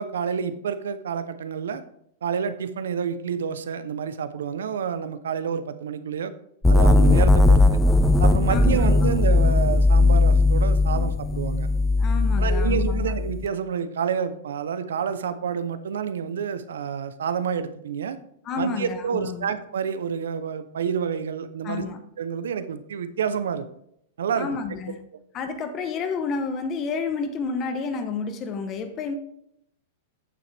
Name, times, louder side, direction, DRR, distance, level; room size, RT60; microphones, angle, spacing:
voice 1, 0.0-1.8 2.2-6.3 6.7-7.8 8.2-11.7 12.4-18.2 18.6-21.8 22.2-23.7 24.2-24.6, right 7 dB, 85° right, 0.7 m, -28 dB
sound 1, 6.6-13.4, left 2 dB, 5° left, 0.4 m, -18 dB
voice 2, 8.5-9.1 12.0-13.1 18.4-19.5 21.6-22.0 24.4-25.0 25.3-29.1, left 5 dB, 30° left, 1.0 m, -30 dB
8.8 x 7.1 x 3.4 m
hypercardioid pair, 140°, 0 cm